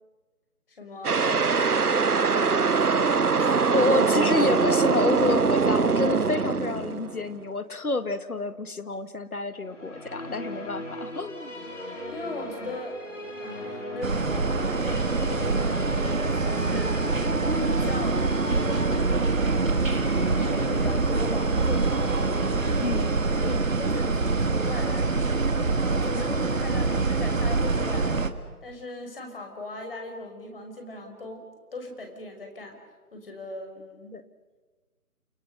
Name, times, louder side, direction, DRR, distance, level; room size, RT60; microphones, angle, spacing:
voice 1, 0.8-3.9 12.1-13.0 13.4-17.0 17.6-19.4 20.3-21.9 23.2-25.3 25.7-28.3 28.6-31.5 31.7-32.8 33.1-34.2, left 2 dB, 40° left, 3 dB, 5.6 m, -39 dB
sound 1, 1.0-7.3, right 5 dB, 80° right, 1.1 m, -23 dB
voice 2, 3.7-11.5 22.8-23.1 23.4-23.6 34.1-34.2, left 2 dB, 70° left, 11 dB, 2.1 m, -28 dB
Musical instrument, 9.6-25.0, left 1 dB, 55° left, 5.4 m, -38 dB
sound 2, 14.0-28.3, right 3 dB, 60° right, 1.9 m, -25 dB
29.0 x 28.5 x 6.8 m, 1.3 s
figure-of-eight pair, 165°, 45 cm